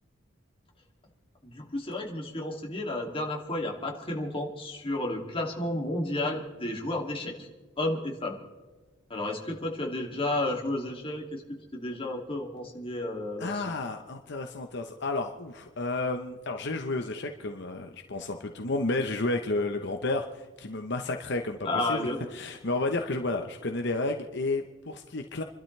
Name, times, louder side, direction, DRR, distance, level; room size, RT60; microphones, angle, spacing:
voice 1, 1.4-7.5 7.8-8.4 9.1-11.4 11.7-13.6 21.6-22.2, left 1 dB, 30° left, 0 dB, 2.6 m, -32 dB
voice 2, 13.4-25.4, left 2 dB, 60° left, 4 dB, 1.0 m, -31 dB
28.0 x 12.5 x 3.3 m, 1.3 s
head